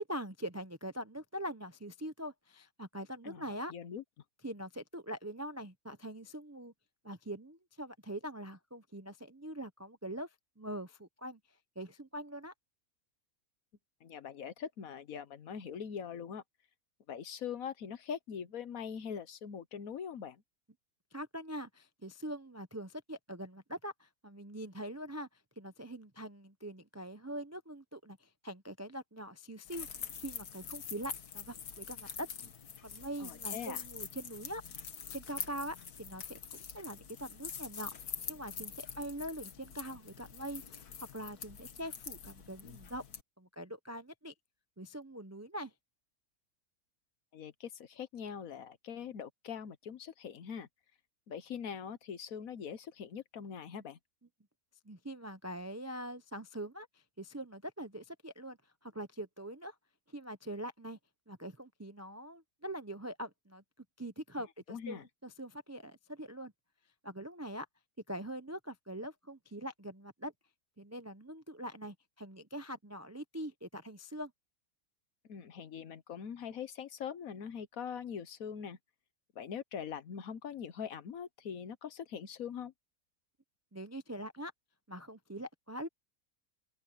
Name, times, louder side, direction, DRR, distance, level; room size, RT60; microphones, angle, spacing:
voice 1, 0.0-3.7 4.4-6.7 7.0-10.3 10.6-11.4 11.8-12.5 21.1-25.3 25.6-32.3 32.8-34.6 35.1-37.9 38.3-40.8 41.1-43.0 43.4-44.3 44.8-45.7 54.9-56.9 57.2-58.6 58.8-59.7 60.1-61.0 61.3-63.6 64.0-66.5 67.0-67.7 68.1-70.3 70.8-74.3 83.7-84.5 84.9-85.9, right 1 dB, 20° right, 0.4 m, -43 dB
voice 2, 3.7-4.0 14.0-16.4 17.1-20.4 33.2-33.8 47.3-50.7 51.3-54.0 64.7-65.0 75.3-78.8 79.3-82.7, left 7 dB, 65° left, 1.4 m, -42 dB
sound 1, 29.6-43.2, left 7 dB, 85° left, 1.9 m, -45 dB
open air
omnidirectional pair, 1.6 m